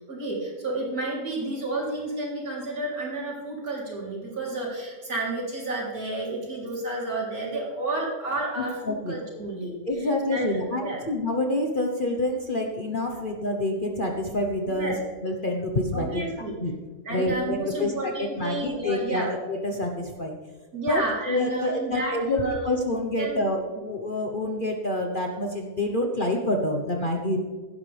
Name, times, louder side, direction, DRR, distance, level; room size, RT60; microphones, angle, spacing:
voice 1, 0.0-11.0 13.1-13.3 14.7-15.0 15.9-16.5 17.0-19.3 20.7-22.7 23.2-23.4 23.8-23.9, right 2 dB, 60° right, -4 dB, 4.1 m, -31 dB
voice 2, 8.9-9.2 9.9-14.9 15.2-16.2 16.6-16.7 17.1-20.4 20.9-27.4, left 1 dB, 35° left, 2 dB, 1.1 m, -27 dB
16.5 x 11.5 x 3.4 m, 1.4 s
omnidirectional pair, 1.7 m